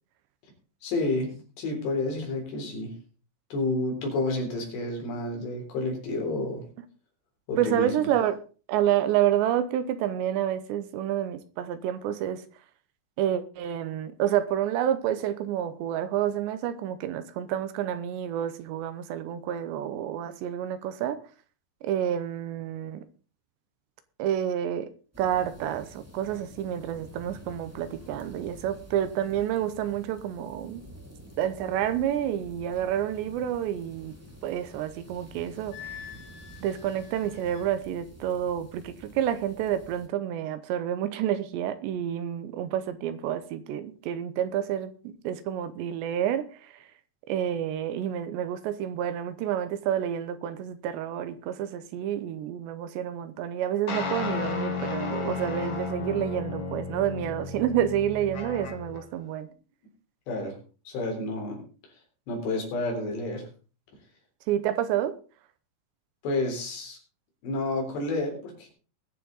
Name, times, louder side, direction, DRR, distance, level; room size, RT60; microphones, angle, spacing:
voice 1, 0.8-2.9 3.5-6.6 7.5-7.9 60.3-60.6 60.9-61.6 62.3-63.5 66.2-67.0 67.4-68.7, left 2 dB, 65° left, 5.9 m, -30 dB
voice 2, 7.6-8.4 8.7-12.4 13.2-21.3 21.8-23.1 24.2-24.9 25.2-30.8 31.4-34.2 34.4-36.1 36.6-46.9 47.3-59.5 64.5-65.2, right 10 dB, 80° right, 2.9 m, -29 dB
sound 1, 25.1-40.1, equal, 10° right, 0.8 m, -49 dB
Wind instrument woodwind instrument, 35.7-37.7, left 10 dB, 85° left, 3.6 m, -45 dB
sound 2, 53.9-59.0, left 4 dB, 40° left, 1.7 m, -33 dB
21.0 x 7.4 x 4.0 m
omnidirectional pair, 5.3 m